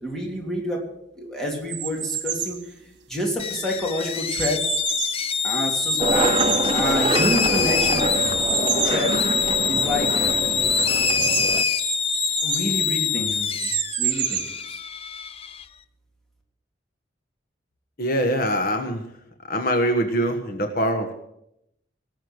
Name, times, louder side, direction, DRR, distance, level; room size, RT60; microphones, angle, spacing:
voice 1, 0.0-0.8 1.1-2.6 3.1-4.6 5.4-6.4 6.7-8.1 8.8-9.1 9.7-10.2 12.4-13.7 14.0-14.8, equal, 5° left, -1 dB, 3.2 m, -28 dB
sound 1, 1.7-2.6 3.3-5.3 5.8-7.4 8.1-9.1 9.5-9.6 9.8-9.9 10.6-12.7 13.3-14.6, right 10 dB, 70° right, 1.6 m, -29 dB
sound 2, 3.4-15.6, left 7 dB, 30° left, 0.5 m, -25 dB
Skateboard, 6.0-11.6, right 2 dB, 30° right, 0.8 m, -25 dB
voice 2, 18.0-19.0 19.5-21.1, equal, 55° left, 5 dB, 1.5 m, -23 dB
18.5 x 7.0 x 8.0 m, 0.80 s
head